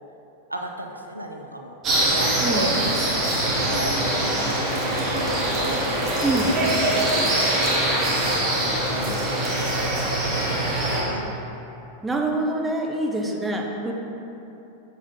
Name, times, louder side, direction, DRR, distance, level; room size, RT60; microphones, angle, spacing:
voice 1, 0.5-1.7 2.2-2.7 3.5-5.9 6.3-6.5 6.9-11.3, right 1 dB, 85° right, 3 dB, 0.4 m, -35 dB
sound 1, 1.8-11.0, right 1 dB, 30° right, 1.2 m, -23 dB
voice 2, 2.4-2.8 6.2-6.5 12.0-13.9, right 2 dB, 10° right, 0 dB, 0.6 m, -25 dB
6.1 x 4.1 x 3.9 m, 3.0 s
figure-of-eight pair, 90°, 0 cm